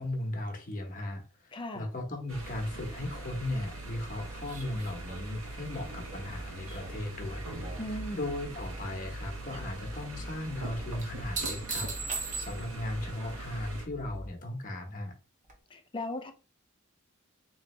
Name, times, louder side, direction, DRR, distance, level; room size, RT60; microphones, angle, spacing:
voice 1, 0.0-7.5 7.8-15.1, left 1 dB, 40° left, 1.1 m, -37 dB
voice 2, 1.5-1.9 7.8-8.2 15.7-16.3, left 1 dB, 25° left, 0.6 m, -37 dB
sound 1, 2.3-13.9, right 2 dB, 85° right, 1.1 m, -42 dB
sound 2, 4.5-7.9 8.3-8.9 11.0-12.9 15.5-15.6, right 4 dB, 40° right, 1.0 m, -40 dB
sound 3, 6.2-14.3, left 1 dB, 70° left, 0.8 m, -47 dB
4.0 x 3.2 x 3.2 m
head